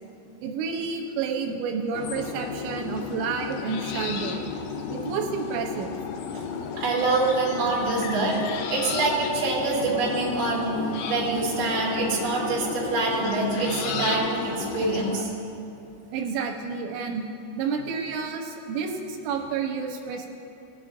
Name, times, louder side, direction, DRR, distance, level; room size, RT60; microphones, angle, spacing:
voice 1, 0.4-4.5 4.9-5.9 7.4-7.5 16.1-17.3 17.6-20.3, right 5 dB, 90° right, 1 dB, 3.1 m, -30 dB
sound 1, 1.9-15.2, left 6 dB, 80° left, 2.4 m, -33 dB
voice 2, 6.8-8.4 8.7-10.8 11.0-15.3, right 3 dB, 45° right, -6 dB, 2.8 m, -25 dB
21.0 x 8.0 x 2.5 m, 2.7 s
omnidirectional pair, 5.3 m